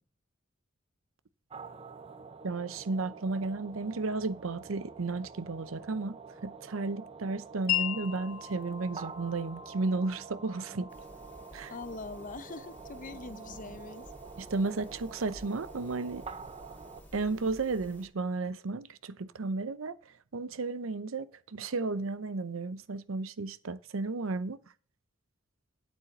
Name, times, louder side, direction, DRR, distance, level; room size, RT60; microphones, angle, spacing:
sound 1, 1.5-17.0, right 5 dB, 30° right, 0.7 m, -47 dB
voice 1, 2.4-6.2 6.4-10.9 11.5-11.7 14.4-16.2 17.1-24.6, right 3 dB, 85° right, 0.7 m, -33 dB
Wind chime, 7.7-15.3, left 13 dB, 70° left, 2.4 m, -40 dB
sound 2, 10.9-18.1, equal, 10° left, 2.0 m, -52 dB
voice 2, 11.7-14.1, left 3 dB, 40° left, 0.6 m, -43 dB
9.1 x 8.3 x 4.1 m
head